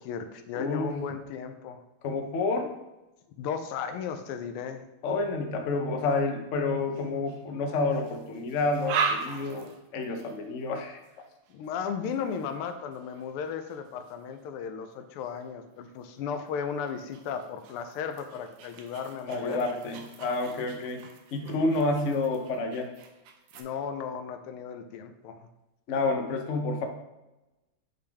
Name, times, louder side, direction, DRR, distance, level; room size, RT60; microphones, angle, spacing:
voice 1, 0.0-1.8 3.4-4.8 11.5-19.7 21.4-21.6 23.5-25.5, left 7 dB, 85° left, 8 dB, 1.5 m, -35 dB
voice 2, 0.5-1.0 2.0-2.7 5.0-11.0 19.3-22.9 25.9-26.8, left 3 dB, 70° left, 3 dB, 0.7 m, -29 dB
sound 1, 6.9-7.5 7.9-14.5 15.2-15.4 16.0-23.6, right 5 dB, 85° right, 1.6 m, -39 dB
8.3 x 3.4 x 3.4 m, 0.99 s
omnidirectional pair, 2.4 m